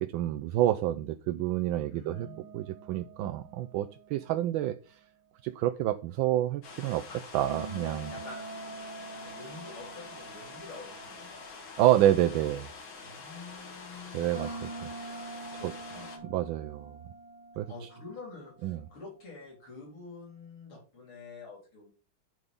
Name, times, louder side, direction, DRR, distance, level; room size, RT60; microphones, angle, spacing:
voice 1, 0.0-2.3 2.5-4.8 5.4-7.1 7.3-8.1 11.8-12.7 14.1-14.5 15.1-15.3 15.6-15.7 16.3-16.9 17.6-17.7 18.6-18.8, right 13 dB, 80° right, 8 dB, 1.3 m, -28 dB
voice 2, 1.8-2.4 7.1-7.2 8.1-11.4 13.0-14.8 15.2-16.3 17.7-21.9, left 3 dB, 90° left, -2 dB, 4.3 m, -48 dB
sound 1, 2.1-5.2 7.5-12.0 14.3-18.9, right 3 dB, 20° right, 1.5 m, -45 dB
sound 2, 6.6-16.2, left 4 dB, 70° left, 2.5 m, -46 dB
11.0 x 4.0 x 5.2 m, 0.34 s
omnidirectional pair, 2.2 m